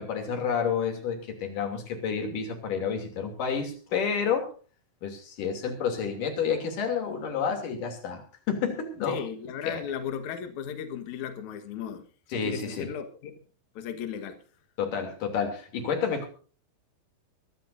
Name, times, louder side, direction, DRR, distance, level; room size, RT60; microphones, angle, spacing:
voice 1, 0.0-4.5 5.0-9.2 9.6-9.8 12.3-12.9 14.8-16.3, left 6 dB, 45° left, 4 dB, 3.9 m, -30 dB
voice 2, 9.0-13.3 13.7-14.4, left 8 dB, 80° left, 8 dB, 1.6 m, -36 dB
23.0 x 14.0 x 2.6 m, 0.38 s
omnidirectional pair, 5.8 m